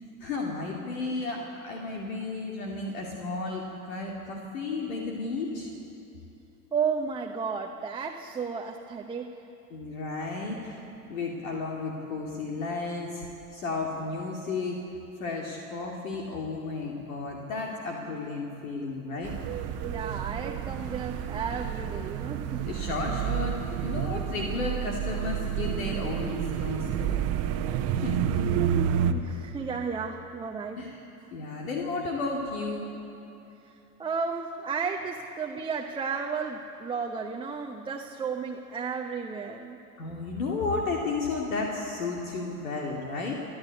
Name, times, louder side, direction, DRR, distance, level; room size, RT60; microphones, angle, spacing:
voice 1, 0.2-5.7 9.7-10.8 11.1-13.2 13.5-14.8 15.2-19.3 22.6-27.2 28.0-28.5 30.8-31.0 31.3-32.9 40.0-43.3, left 3 dB, 60° left, -1 dB, 2.6 m, -33 dB
voice 2, 6.7-9.4 19.8-22.7 29.1-30.8 33.6-33.7 34.0-39.8, right 5 dB, 10° right, 2 dB, 0.9 m, -33 dB
sound 1, 19.2-29.1, right 9 dB, 30° right, 1.1 m, -30 dB
28.5 x 11.5 x 8.3 m, 2.8 s
figure-of-eight pair, 85°, 46 cm